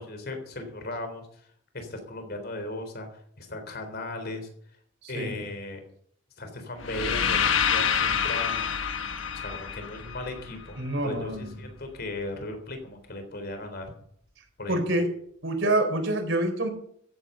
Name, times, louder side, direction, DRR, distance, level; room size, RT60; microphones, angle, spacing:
voice 1, 0.0-1.4 1.7-4.5 5.1-5.8 6.4-8.6 9.3-13.9 14.6-14.9, left 2 dB, 55° left, 6 dB, 3.6 m, -37 dB
voice 2, 5.0-5.4 10.8-11.5 14.7-15.1 15.4-16.7, right 1 dB, 70° right, 5 dB, 4.1 m, -27 dB
sound 1, 6.8-10.9, left 7 dB, 80° left, 1.4 m, -27 dB
15.5 x 9.3 x 6.8 m, 0.64 s
head